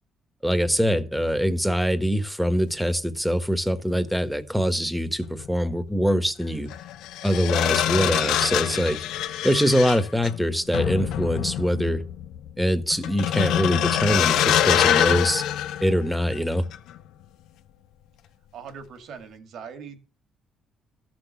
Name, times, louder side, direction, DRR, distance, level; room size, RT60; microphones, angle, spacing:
voice 1, 0.4-6.7 7.2-9.0 9.4-12.0 12.6-15.4 15.8-16.6, equal, ahead, 10 dB, 1.4 m, -23 dB
sound 1, 5.3-5.5 6.7-16.4 16.7-17.0, left 11 dB, 85° left, 0.8 m, -25 dB
voice 2, 18.5-20.0, right 6 dB, 70° right, 8 dB, 2.1 m, -40 dB
13.5 x 6.2 x 7.1 m, 0.36 s
cardioid pair, 95°, 0 cm